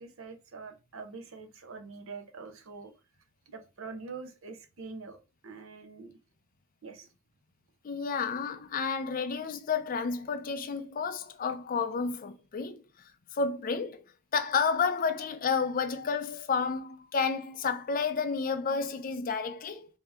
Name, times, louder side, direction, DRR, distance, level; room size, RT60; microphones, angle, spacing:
voice 1, 0.0-2.9 3.5-6.2 6.8-7.1, right 4 dB, 65° right, 0.7 m, -44 dB
voice 2, 7.8-12.8 13.3-14.0 14.3-19.9, left 5 dB, 40° left, 0.4 m, -31 dB
3.5 x 2.8 x 3.4 m
head